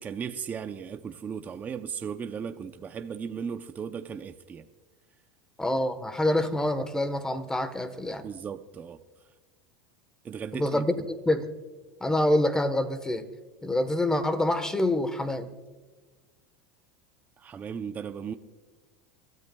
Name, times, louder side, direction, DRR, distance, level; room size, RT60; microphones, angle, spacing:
voice 1, 0.0-4.7 8.2-9.0 10.2-10.8 17.4-18.3, right 7 dB, 25° right, 0.6 m, -36 dB
voice 2, 5.6-8.2 10.5-10.9 11.2-11.5 12.0-13.3 13.6-15.5, left 1 dB, 10° left, 1.2 m, -26 dB
29.5 x 13.5 x 2.3 m
supercardioid pair, 115°, 6 cm